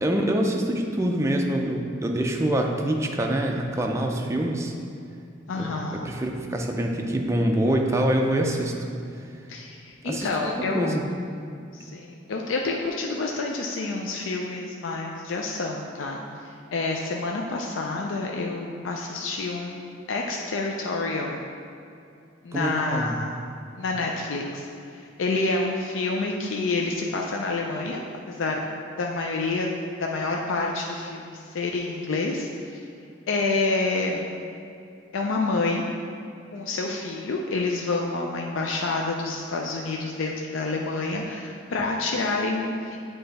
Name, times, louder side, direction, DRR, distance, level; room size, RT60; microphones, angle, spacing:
voice 1, 0.0-4.7 5.6-8.8 10.0-10.3 10.7-11.0 22.5-23.2, right 1 dB, 15° right, 1 dB, 0.4 m, -25 dB
voice 2, 5.5-6.1 9.5-10.9 11.7-21.4 22.4-23.4 23.8-24.7 24.9-28.0 28.3-28.7 29.0-29.7 30.0-32.8 33.3-34.4 35.1-35.9 36.5-43.0, left 3 dB, 90° left, 0 dB, 0.4 m, -28 dB
7.6 x 3.3 x 4.0 m, 2.5 s
head